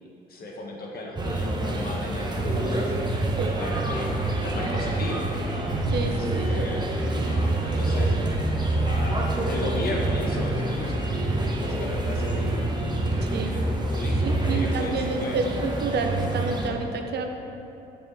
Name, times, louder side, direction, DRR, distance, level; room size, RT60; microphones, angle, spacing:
voice 1, 0.0-2.9 3.6-4.1 4.4-5.3 6.0-6.8 7.3-8.4 8.9-11.0 11.6-12.6 13.0-13.6 13.9-15.4, left 1 dB, 55° left, -1 dB, 1.4 m, -35 dB
sound 1, 1.1-16.7, right 2 dB, 25° right, 1.0 m, -26 dB
voice 2, 5.9-6.6 13.2-13.5 14.2-17.3, right 4 dB, 60° right, 4 dB, 0.8 m, -29 dB
6.9 x 6.5 x 4.2 m, 2.9 s
cardioid pair, 85°, 19 cm